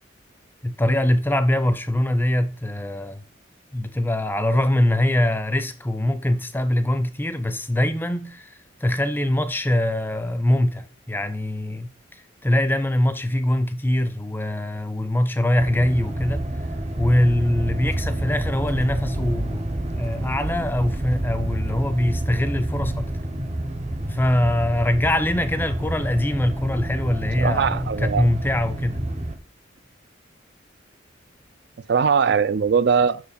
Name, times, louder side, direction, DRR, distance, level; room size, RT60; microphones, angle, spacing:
voice 1, 0.6-3.2 3.7-11.9 12.4-16.4 17.0-19.6 19.9-23.1 24.1-29.0, left 1 dB, 10° left, 0.5 m, -23 dB
sound 1, 15.6-29.4, right 1 dB, 35° right, 0.8 m, -28 dB
voice 2, 27.4-28.2 31.9-33.2, right 6 dB, 60° right, 0.4 m, -20 dB
6.3 x 4.8 x 5.1 m
head